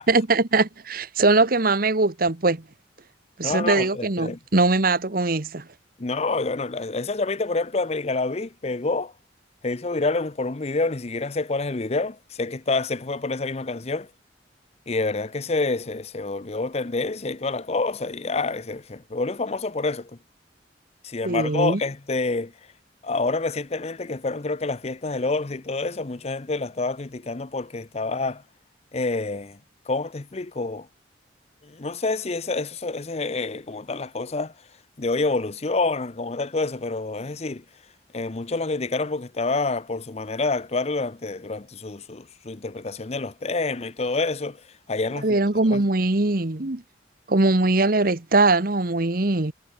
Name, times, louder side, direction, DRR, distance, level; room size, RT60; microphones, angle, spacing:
voice 1, 0.1-2.6 3.4-5.7 21.2-21.8 45.2-46.8 47.3-49.5, right 2 dB, 50° right, 1.3 m, -21 dB
voice 2, 3.4-4.4 6.0-9.1 9.6-14.1 14.9-20.1 21.0-22.5 23.0-28.4 28.9-29.6 29.9-30.9 31.6-34.5 35.0-37.6 38.1-44.6 44.9-45.4 45.7-45.8, left 3 dB, 35° left, 0.7 m, -27 dB
head